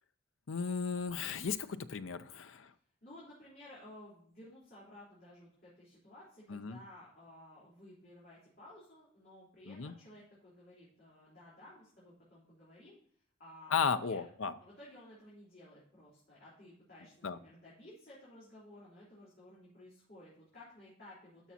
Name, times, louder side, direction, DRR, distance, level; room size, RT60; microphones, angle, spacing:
voice 1, 0.5-2.7 6.5-6.8 9.7-9.9 13.7-14.6 17.2-17.4, left 6 dB, 85° left, 12 dB, 0.6 m, -35 dB
voice 2, 3.0-13.0 13.4-14.3 14.6-21.5, left 1 dB, 45° left, -9 dB, 3.6 m, -55 dB
13.0 x 6.1 x 2.8 m, 0.64 s
head